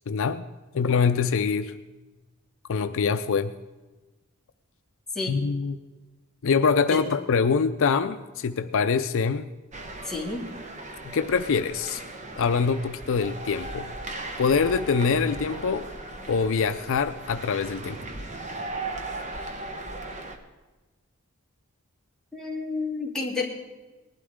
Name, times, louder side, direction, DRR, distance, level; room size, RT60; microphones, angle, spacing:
voice 1, 0.1-0.4 0.7-1.7 2.7-3.5 5.3-5.8 6.4-9.5 11.0-12.0 12.4-13.9 14.4-15.9 16.3-18.0, left 5 dB, 65° left, 9 dB, 0.5 m, -24 dB
sound 1, 9.7-20.4, right 2 dB, 35° right, 1.1 m, -37 dB
voice 2, 10.0-10.5 22.3-23.5, left 3 dB, 5° left, -4 dB, 2.4 m, -30 dB
19.5 x 12.0 x 3.7 m, 1.2 s
head